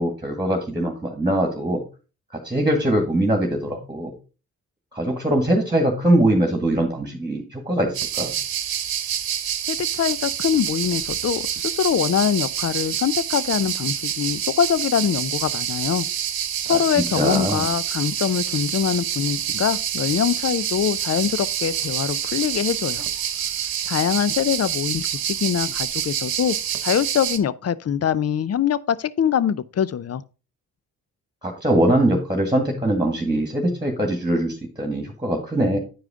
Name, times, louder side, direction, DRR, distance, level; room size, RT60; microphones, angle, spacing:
voice 1, 0.0-1.8 2.4-4.1 4.9-8.3 16.7-16.8 17.2-17.7 31.4-35.8, right 1 dB, 10° right, 1.9 m, -22 dB
sound 1, 7.9-27.4, right 10 dB, 70° right, 1.0 m, -27 dB
voice 2, 9.7-16.1 16.7-23.1 23.9-30.2, left 8 dB, 40° left, 0.6 m, -23 dB
9.4 x 4.8 x 3.6 m
supercardioid pair, 50°, 38 cm